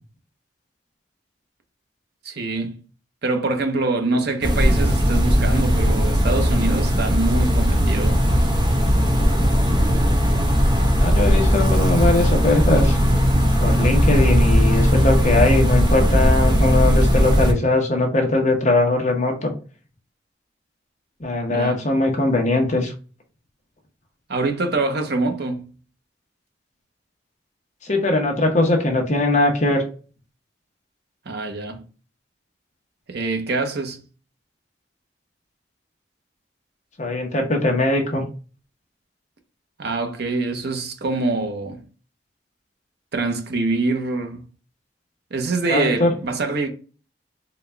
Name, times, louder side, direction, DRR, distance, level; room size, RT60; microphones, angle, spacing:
voice 1, 2.2-2.8 3.2-8.2 21.5-21.8 24.3-25.7 31.3-31.8 33.1-34.0 39.8-41.8 43.1-44.4 45.3-46.7, right 3 dB, 65° right, 0.7 m, -25 dB
sound 1, 4.4-17.5, equal, 25° right, 0.8 m, -18 dB
voice 2, 11.0-13.0 13.6-19.5 21.2-22.9 27.8-29.8 37.0-38.2 45.7-46.1, left 2 dB, 40° left, 0.9 m, -20 dB
3.9 x 2.3 x 3.2 m
head